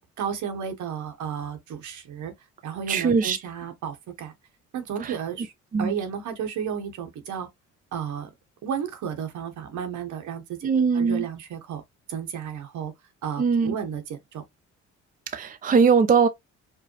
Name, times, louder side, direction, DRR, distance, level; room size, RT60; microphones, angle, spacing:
voice 1, 0.2-2.3 2.6-4.3 4.7-5.5 5.8-7.5 7.9-8.3 8.6-10.7 10.9-11.8 12.1-12.9 13.2-14.4, right 8 dB, 75° right, 1.2 m, -33 dB
voice 2, 2.9-3.4 5.0-5.2 5.7-5.9 10.6-11.3 13.4-13.8 15.3-16.3, right 5 dB, 30° right, 0.5 m, -21 dB
4.8 x 2.2 x 3.0 m
cardioid pair, 90°, 30 cm